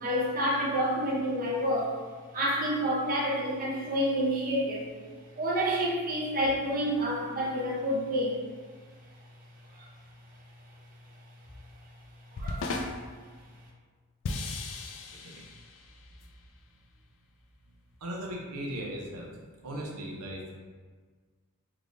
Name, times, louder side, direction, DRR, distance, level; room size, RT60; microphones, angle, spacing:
voice 1, 0.0-2.0 2.3-4.9 5.4-8.4 9.8-9.9 12.4-12.7, equal, 40° right, -4 dB, 0.6 m, -28 dB
sound 1, 12.4-13.2 14.2-16.2, left 3 dB, 60° left, 0.4 m, -36 dB
voice 2, 15.1-15.5 18.0-19.3 19.6-20.6, right 1 dB, 80° right, -1 dB, 0.6 m, -38 dB
3.5 x 3.1 x 2.5 m, 1.5 s
head